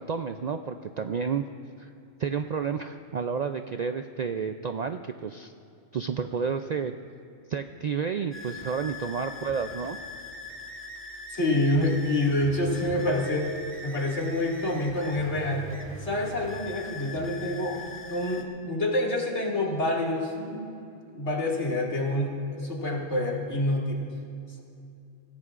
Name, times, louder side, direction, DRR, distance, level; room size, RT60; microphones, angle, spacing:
voice 1, 0.0-1.5 1.8-1.9 2.2-5.5 5.9-6.9 7.5-10.0, right 6 dB, 60° right, 7 dB, 0.4 m, -30 dB
sound 1, 8.3-18.4, left 2 dB, 10° left, 1.3 m, -41 dB
voice 2, 11.3-13.5 13.8-15.7 16.0-17.8 18.1-20.6 21.1-24.0, left 1 dB, 75° left, -3 dB, 2.6 m, -27 dB
27.0 x 16.0 x 2.5 m, 2.7 s
omnidirectional pair, 1.2 m